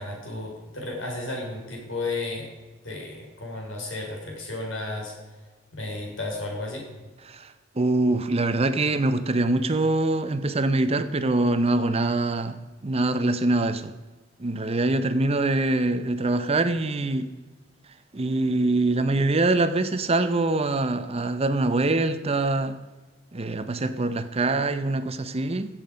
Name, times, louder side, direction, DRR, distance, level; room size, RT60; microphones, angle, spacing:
voice 1, 0.0-2.5 2.8-5.1 5.7-6.8, left 2 dB, 70° left, 0 dB, 4.4 m, -33 dB
voice 2, 7.8-13.9 14.4-17.3 18.1-22.8 23.3-25.7, right 2 dB, 30° right, 11 dB, 0.6 m, -24 dB
16.0 x 7.5 x 5.1 m, 1.2 s
head